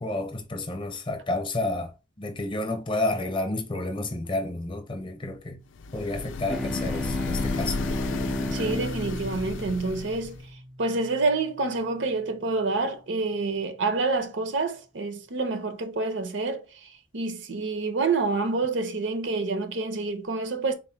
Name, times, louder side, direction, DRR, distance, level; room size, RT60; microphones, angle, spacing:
voice 1, 0.0-1.9 2.2-5.6 5.9-7.8, left 2 dB, 25° left, 0.7 m, -30 dB
sound 1, 5.8-10.5, left 4 dB, 85° left, 0.4 m, -34 dB
sound 2, 6.5-11.4, equal, ahead, 0.3 m, -33 dB
voice 2, 8.5-10.4 10.8-16.6 17.1-20.7, right 3 dB, 80° right, 0.7 m, -27 dB
3.9 x 2.1 x 4.5 m
head